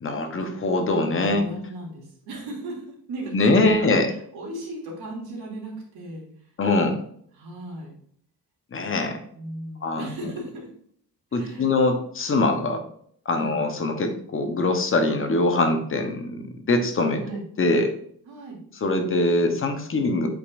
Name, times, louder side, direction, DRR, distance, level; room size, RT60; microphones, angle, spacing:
voice 1, 0.0-1.4 3.3-4.1 6.6-7.0 8.7-9.2 9.8-10.1 11.3-12.8 13.2-17.2 17.6-17.9 18.8-20.3, left 2 dB, 35° left, 5 dB, 1.0 m, -23 dB
voice 2, 1.3-6.5 7.3-7.9 9.2-10.7 11.3-11.7 13.3-13.6 17.2-17.4 18.2-18.6, right 2 dB, 90° right, -2 dB, 2.9 m, -37 dB
8.5 x 5.2 x 2.6 m, 0.64 s
cardioid pair, 155°, 37 cm